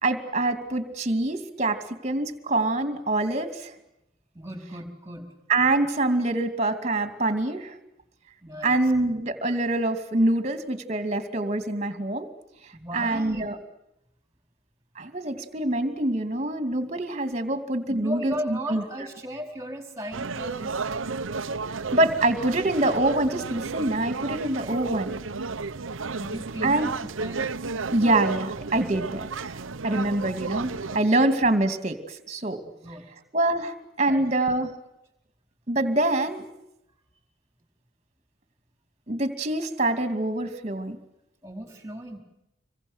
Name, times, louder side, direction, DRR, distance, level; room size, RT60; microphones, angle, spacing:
voice 1, 0.0-3.7 5.5-7.7 8.6-12.3 12.9-13.6 15.0-18.8 21.9-25.1 26.6-26.9 27.9-29.6 29.8-32.6 33.3-34.7 35.7-36.4 39.1-41.0, right 2 dB, 35° right, 9 dB, 2.6 m, -25 dB
voice 2, 4.3-5.3 8.4-8.8 12.7-13.5 17.9-20.9 26.1-26.9 27.2-27.4 30.9-31.0 32.8-33.1 34.1-34.3 41.4-42.2, equal, 15° right, 5 dB, 4.7 m, -36 dB
sound 1, 20.1-31.0, right 4 dB, 75° right, 0.9 m, -33 dB
27.0 x 23.0 x 8.0 m, 0.85 s
head